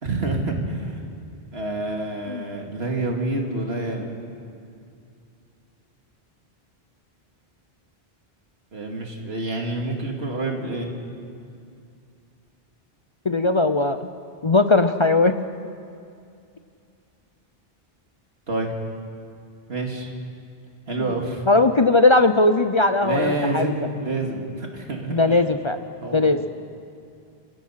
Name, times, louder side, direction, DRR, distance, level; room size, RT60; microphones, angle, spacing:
voice 1, 0.0-1.0 1.5-4.1 8.7-10.9 18.5-18.7 19.7-20.1 20.9-21.4 23.0-25.4 26.0-26.3, right 2 dB, 80° right, 1 dB, 2.7 m, -27 dB
voice 2, 13.3-14.0 14.4-15.3 21.0-21.1 21.5-23.7 25.1-25.8 26.1-26.4, left 2 dB, 35° left, 9 dB, 0.6 m, -18 dB
29.5 x 16.0 x 5.8 m, 2.5 s
omnidirectional pair, 1.0 m